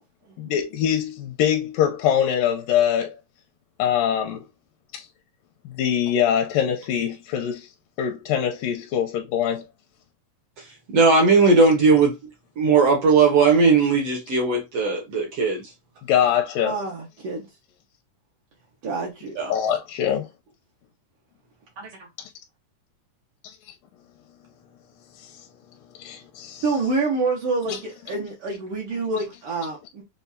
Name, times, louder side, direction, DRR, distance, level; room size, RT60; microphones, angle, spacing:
voice 1, 0.4-3.2 3.8-4.4 4.9-5.1 5.7-7.7 8.0-9.7 16.0-16.8 19.5-20.3 25.2-25.5 26.0-26.7 27.7-27.8, left 9 dB, 80° left, 2.2 m, -23 dB
voice 2, 10.9-12.2 12.6-15.6 19.4-19.5, right 4 dB, 70° right, 1.5 m, -18 dB
voice 3, 16.6-17.5 18.8-19.3 21.8-22.1 26.6-30.0, right 3 dB, 85° right, 1.2 m, -27 dB
6.8 x 2.3 x 2.7 m
omnidirectional pair, 4.2 m